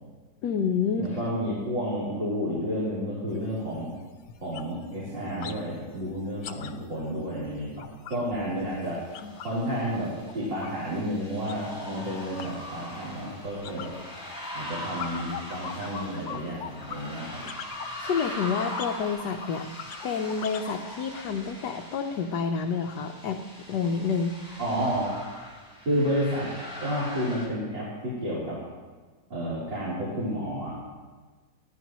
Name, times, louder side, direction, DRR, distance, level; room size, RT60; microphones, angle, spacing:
voice 1, 0.4-1.2 9.2-9.3 17.8-24.6, left 5 dB, 65° left, 4 dB, 1.3 m, -29 dB
voice 2, 0.9-3.9 4.4-9.0 9.4-13.9 14.5-17.4 24.6-25.1 25.9-26.5 26.8-28.6 29.3-30.7, equal, 75° right, -9 dB, 4.4 m, -31 dB
sound 1, 3.3-3.4 3.8-4.0 4.3-5.6 5.9-9.6 9.9-20.8, left 7 dB, 85° left, 1.6 m, -42 dB
sound 2, 9.0-27.5, left 1 dB, 20° left, 4.8 m, -41 dB
20.0 x 14.5 x 3.1 m, 1.4 s
omnidirectional pair, 2.0 m